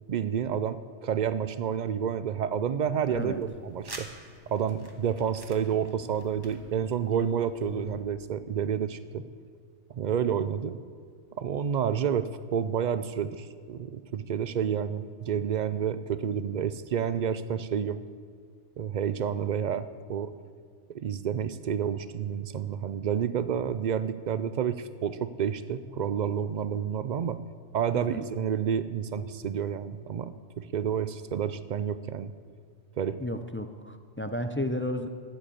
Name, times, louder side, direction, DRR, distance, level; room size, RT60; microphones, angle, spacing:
voice 1, 0.1-4.1 4.5-9.2 9.9-10.8 11.4-18.0 18.8-20.3 20.9-27.4 27.7-32.3 33.0-33.2, right 8 dB, 55° right, 13 dB, 0.5 m, -29 dB
sound 1, 3.0-8.0, right 1 dB, 20° right, 1.3 m, -49 dB
voice 2, 33.2-35.1, left 1 dB, 20° left, 7 dB, 0.3 m, -32 dB
13.0 x 7.9 x 8.5 m, 2.1 s
omnidirectional pair, 1.2 m